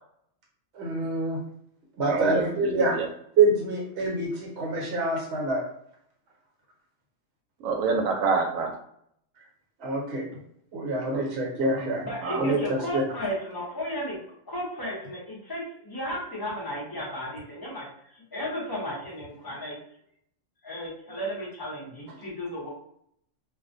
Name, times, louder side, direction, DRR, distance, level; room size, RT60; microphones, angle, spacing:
voice 1, 0.7-1.4 2.0-2.9 3.4-5.6 9.8-10.2 10.7-12.1 12.4-12.6 12.9-13.0, right 3 dB, 60° right, -2 dB, 1.0 m, -26 dB
voice 2, 2.1-3.1 7.6-8.7 11.0-11.2 11.7-11.8 12.2-12.5, right 4 dB, 90° right, 3 dB, 1.0 m, -27 dB
voice 3, 12.0-14.2 14.5-17.9 18.3-19.8 20.6-22.7, equal, 25° left, -5 dB, 0.6 m, -34 dB
2.4 x 2.1 x 2.5 m, 0.70 s
omnidirectional pair, 1.3 m